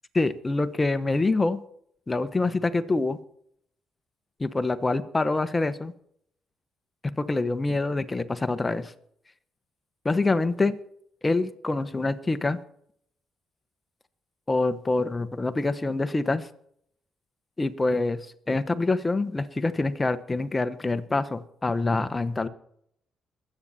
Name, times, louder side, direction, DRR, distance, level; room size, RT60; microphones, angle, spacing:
voice 1, 0.1-1.6 2.1-3.2 4.4-5.9 7.2-8.9 10.0-10.8 11.2-12.6 14.5-16.5 17.6-22.5, left 3 dB, 20° left, 11 dB, 1.1 m, -26 dB
22.5 x 8.9 x 4.3 m, 0.68 s
cardioid pair, 90°, 0 cm